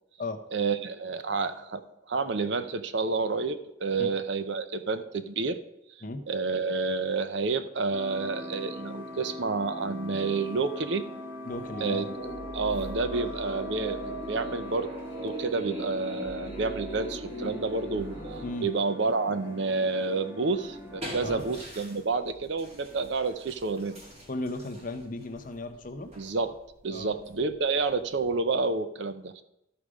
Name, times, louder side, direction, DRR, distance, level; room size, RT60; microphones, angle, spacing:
voice 1, 0.5-1.8 2.1-5.6 6.3-11.1 11.8-12.1 12.5-14.9 15.2-18.1 18.6-24.0 26.2-26.6 26.8-29.4, right 4 dB, 60° right, 11 dB, 0.6 m, -29 dB
sound 1, 7.9-21.6, equal, 10° right, 1.5 m, -42 dB
voice 2, 11.5-12.1 18.4-18.7 21.2-21.5 24.3-26.1 26.9-27.1, left 2 dB, 40° left, 7 dB, 0.7 m, -35 dB
sound 2, 11.5-18.5, right 1 dB, 80° right, 3.7 m, -39 dB
sound 3, 20.5-28.6, equal, 30° right, 2.3 m, -46 dB
13.0 x 4.9 x 5.0 m, 0.85 s
head